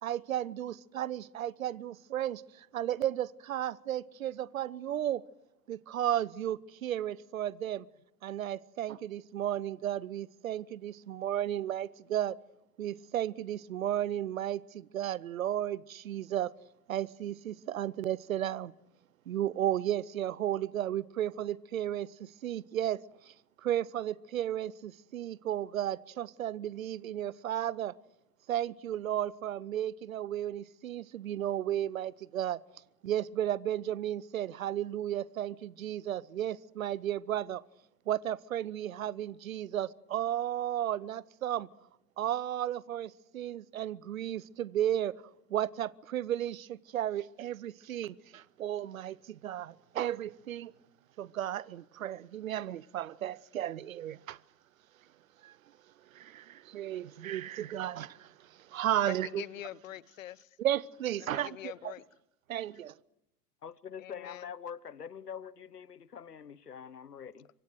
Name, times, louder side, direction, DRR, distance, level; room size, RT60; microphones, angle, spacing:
voice 1, 0.0-5.2 5.7-7.9 8.2-12.4 12.8-16.5 16.9-18.7 19.3-27.9 28.5-32.6 33.0-37.6 38.1-41.7 42.2-45.1 45.5-50.7 51.2-54.4 55.4-55.6 56.1-59.4 60.6-61.9 62.5-62.9, right 11 dB, 60° right, 0.9 m, -34 dB
voice 2, 59.0-60.6 61.2-62.0 64.0-64.5, left 13 dB, 55° left, 0.8 m, -44 dB
voice 3, 63.6-67.5, left 7 dB, 80° left, 1.1 m, -45 dB
26.5 x 24.0 x 6.5 m
figure-of-eight pair, 100°, 47 cm